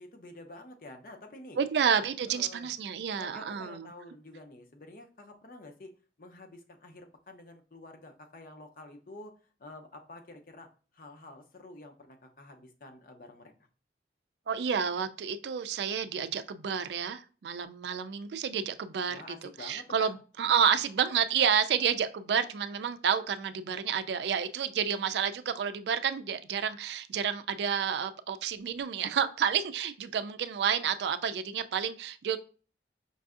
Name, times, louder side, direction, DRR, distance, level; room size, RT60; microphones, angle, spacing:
voice 1, 0.0-1.6 2.2-2.8 3.2-5.9 6.2-9.3 9.6-10.7 10.9-13.7 19.1-20.1, left 2 dB, 50° left, 4 dB, 0.6 m, -49 dB
voice 2, 1.6-3.9 14.5-19.2 19.6-32.4, right 7 dB, 75° right, 11 dB, 0.3 m, -30 dB
5.3 x 2.5 x 2.4 m, 0.38 s
head